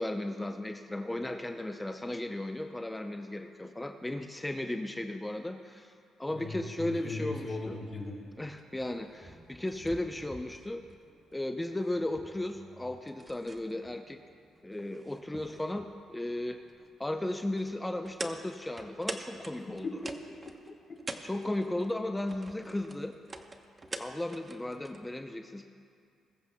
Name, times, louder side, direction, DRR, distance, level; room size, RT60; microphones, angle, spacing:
voice 1, 0.0-5.9 6.2-7.8 8.4-10.8 11.3-14.2 14.6-16.6 17.0-19.9 21.2-23.1 24.0-25.7, left 1 dB, 10° left, 5 dB, 0.6 m, -35 dB
voice 2, 6.3-8.1 19.8-20.5, left 3 dB, 40° left, -1 dB, 3.3 m, -38 dB
sound 1, 7.8-25.1, right 2 dB, 25° right, 0.9 m, -47 dB
21.0 x 14.0 x 2.2 m, 2.3 s
cardioid pair, 90°, 0 cm